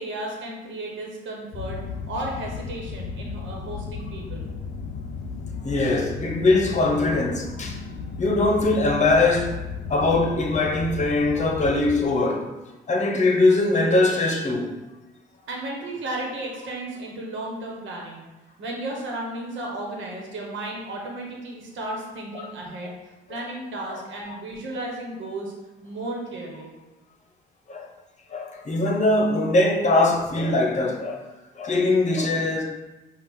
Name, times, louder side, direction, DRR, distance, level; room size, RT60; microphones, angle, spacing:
voice 1, 0.0-1.8 2.1-4.5 15.5-18.2 18.6-22.9 23.3-25.5 25.8-26.7, right 1 dB, 70° right, 1.2 m, -34 dB
sound 1, 1.5-12.0, left 5 dB, 70° left, 0.5 m, -34 dB
voice 2, 5.6-7.8 8.2-9.5 9.9-12.5 12.9-14.7 22.3-22.5 23.9-24.0 27.7-27.9 28.3-31.3 31.6-32.6, left 2 dB, 35° left, 0.9 m, -21 dB
5.7 x 2.5 x 3.6 m
cardioid pair, 90°, 20 cm